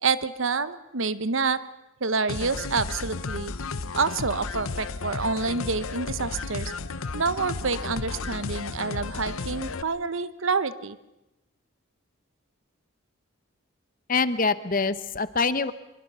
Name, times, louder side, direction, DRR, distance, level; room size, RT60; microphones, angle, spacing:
voice 1, 0.0-1.6 2.0-3.5 3.9-6.7 7.1-11.0, right 4 dB, 65° right, 14 dB, 1.0 m, -27 dB
sound 1, 2.3-9.8, left 3 dB, 80° left, 0.9 m, -33 dB
voice 2, 14.1-15.7, left 4 dB, 40° left, 13 dB, 0.9 m, -25 dB
24.5 x 23.0 x 6.8 m, 0.94 s
head